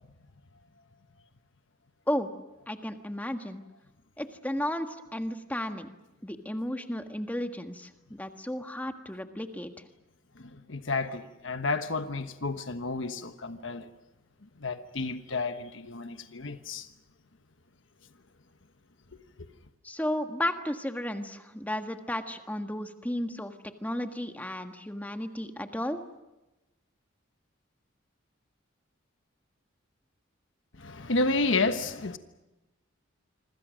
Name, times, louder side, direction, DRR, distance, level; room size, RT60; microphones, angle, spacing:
voice 1, 2.7-3.6 4.2-5.9 6.2-9.7 19.8-23.5 23.8-26.0, left 1 dB, 10° left, 1.5 m, -33 dB
voice 2, 10.3-13.9 14.6-16.9 19.4-19.5 30.7-32.2, left 3 dB, 70° left, 1.2 m, -31 dB
26.5 x 25.0 x 6.4 m
head